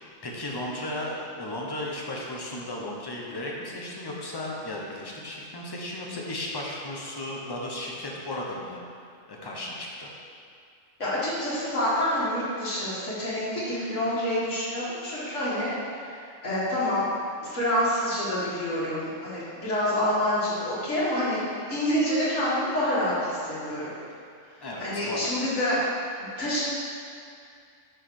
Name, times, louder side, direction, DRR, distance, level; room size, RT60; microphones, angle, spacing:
voice 1, 0.2-8.8 9.3-10.1 24.6-25.3, left 1 dB, 20° left, -2 dB, 0.9 m, -35 dB
voice 2, 11.0-15.7 16.4-17.0 17.4-21.4 21.7-23.9 24.8-25.8 26.4-26.6, left 1 dB, 65° left, -9 dB, 2.5 m, -27 dB
6.2 x 4.8 x 6.4 m, 2.4 s
omnidirectional pair, 1.4 m